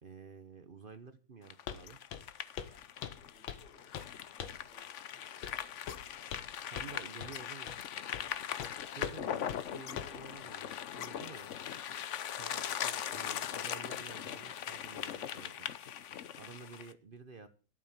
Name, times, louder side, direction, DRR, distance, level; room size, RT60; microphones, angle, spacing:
voice 1, 0.0-2.0 6.7-7.7 8.8-11.5 12.3-15.7 16.3-17.5, right 5 dB, 45° right, 10 dB, 0.7 m, -51 dB
sound 1, 1.5-16.9, left 9 dB, 70° left, 0.7 m, -40 dB
Walk footsteps, 1.7-1.8 2.1-2.3 2.6-2.8 3.0-3.7 3.9-4.1 4.4-4.7 5.4-5.6 5.9-6.5 6.8-6.9 7.2-7.3 7.7-7.8 8.1-8.3 8.6-8.7 9.0-9.2 9.5-9.6 10.0-10.2, left 9 dB, 85° left, 1.9 m, -41 dB
voice 2, 3.0-6.1 6.8-7.2, left 2 dB, 30° left, -6 dB, 6.6 m, -66 dB
12.5 x 7.4 x 7.1 m, 0.37 s
omnidirectional pair, 2.1 m